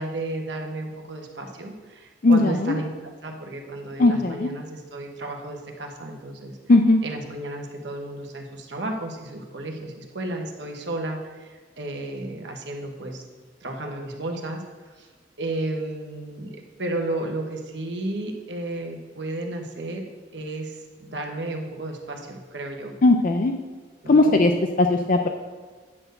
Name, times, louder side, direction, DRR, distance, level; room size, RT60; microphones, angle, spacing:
voice 1, 0.0-2.9 3.2-6.6 7.0-13.3 13.6-15.1 15.4-20.0 20.3-22.9 24.0-24.4, right 2 dB, 65° right, 2 dB, 1.2 m, -33 dB
voice 2, 2.2-2.7 4.0-4.5 6.7-7.0 23.0-23.5 24.1-24.5 24.8-25.3, left 2 dB, 45° left, 5 dB, 0.5 m, -18 dB
9.8 x 4.5 x 6.6 m, 1.4 s
head